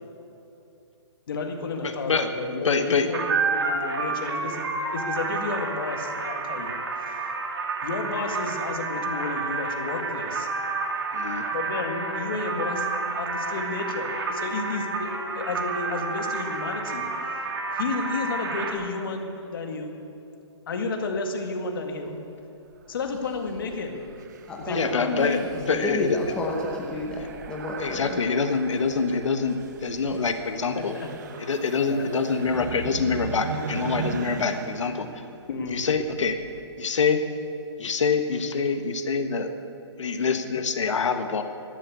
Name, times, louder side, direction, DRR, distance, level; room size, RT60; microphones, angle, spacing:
voice 1, 1.3-4.6 4.9-6.8 7.1-7.2 7.8-10.5 11.5-17.1 17.8-19.9 20.7-22.2 22.9-24.0 24.6-25.4 30.8-31.1 31.8-32.1 35.5-35.8, left 3 dB, 50° left, 4 dB, 2.0 m, -32 dB
voice 2, 1.8-3.1 11.1-11.5 24.7-26.2 27.8-30.9 31.4-35.1 35.7-36.4 36.8-37.2 37.8-39.5 40.0-41.4, left 5 dB, 80° left, 7 dB, 1.3 m, -25 dB
sound 1, 3.1-18.7, right 4 dB, 55° right, 2.2 m, -30 dB
sound 2, 22.7-36.6, right 6 dB, 40° right, 0.9 m, -39 dB
voice 3, 24.5-25.2 25.7-28.2 30.1-30.2, left 2 dB, 5° left, -2 dB, 0.9 m, -31 dB
12.5 x 12.5 x 8.3 m, 2.8 s
hypercardioid pair, 175°, 15 cm